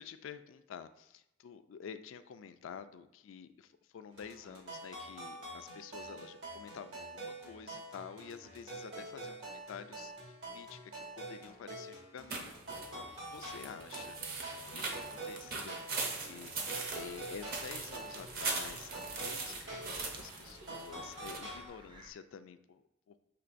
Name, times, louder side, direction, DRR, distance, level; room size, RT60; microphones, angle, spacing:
voice 1, 0.0-12.5 12.7-23.2, left 7 dB, 85° left, 11 dB, 0.3 m, -50 dB
sound 1, 4.1-21.7, right 2 dB, 75° right, 1.6 m, -46 dB
sound 2, 12.3-21.4, right 3 dB, 50° right, 0.7 m, -41 dB
sound 3, 16.8-22.1, right 1 dB, 25° right, 0.4 m, -57 dB
6.7 x 3.0 x 2.5 m, 0.82 s
head